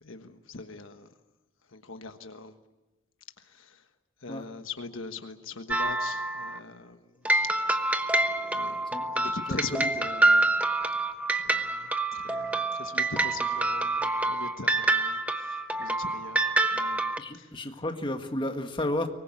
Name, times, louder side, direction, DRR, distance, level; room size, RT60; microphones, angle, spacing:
voice 1, 0.0-1.1 1.7-2.5 3.4-3.8 4.2-7.0 8.5-8.8 9.1-10.5 11.4-16.4 16.7-17.5, left 3 dB, 65° left, 7 dB, 1.3 m, -41 dB
sound 1, 5.7-6.6 7.3-17.2, right 2 dB, 5° right, 1.0 m, -27 dB
voice 2, 9.5-9.8 17.2-19.1, left 1 dB, 25° left, 5 dB, 1.7 m, -32 dB
24.0 x 20.0 x 8.6 m, 1.1 s
head